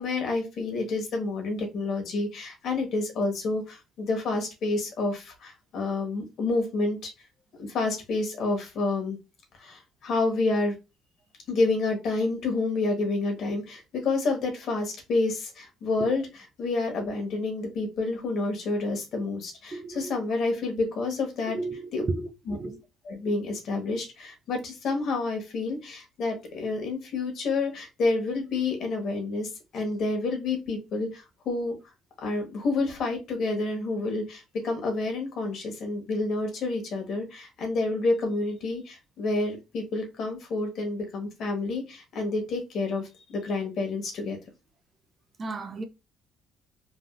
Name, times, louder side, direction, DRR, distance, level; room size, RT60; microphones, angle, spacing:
voice 1, 0.0-7.1 7.6-9.2 9.6-10.7 11.5-21.6 21.9-22.0 22.5-22.6 23.0-31.7 32.2-44.4, left 3 dB, 60° left, 1.1 m, -29 dB
voice 2, 19.7-20.2 21.5-22.8 45.4-45.8, right 3 dB, 30° right, 0.3 m, -34 dB
3.2 x 2.4 x 2.4 m
cardioid pair, 120°, 0 cm